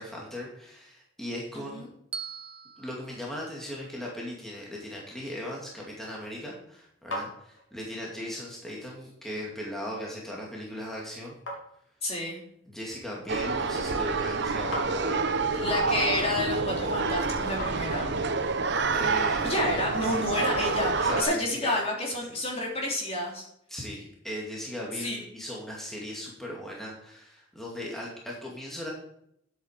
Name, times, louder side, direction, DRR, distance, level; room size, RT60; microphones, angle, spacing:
voice 1, 0.0-1.9 2.8-11.4 12.7-15.7 18.9-19.7 21.0-21.7 22.3-22.4 23.7-28.9, left 1 dB, ahead, -4 dB, 2.3 m, -38 dB
voice 2, 1.5-1.9 12.0-12.4 15.5-18.1 19.4-23.4 25.0-25.2, left 1 dB, 30° left, -1 dB, 3.2 m, -30 dB
Bell, 2.1-4.3, right 6 dB, 30° right, 0.7 m, -43 dB
sound 1, 6.6-21.9, left 1 dB, 70° left, 3.1 m, -45 dB
sound 2, 13.3-21.2, right 4 dB, 65° right, 1.0 m, -28 dB
9.7 x 8.3 x 5.0 m, 0.72 s
head